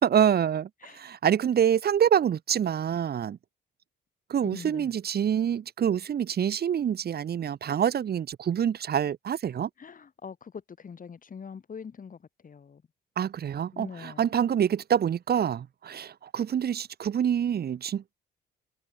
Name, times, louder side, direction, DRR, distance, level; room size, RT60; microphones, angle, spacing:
voice 1, 0.0-3.4 4.3-9.7 13.2-18.1, right 9 dB, 55° right, 1.3 m, -26 dB
voice 2, 4.5-4.9 9.8-12.8 13.7-14.3, left 6 dB, 45° left, 5.0 m, -43 dB
cardioid pair, 90°, 20 cm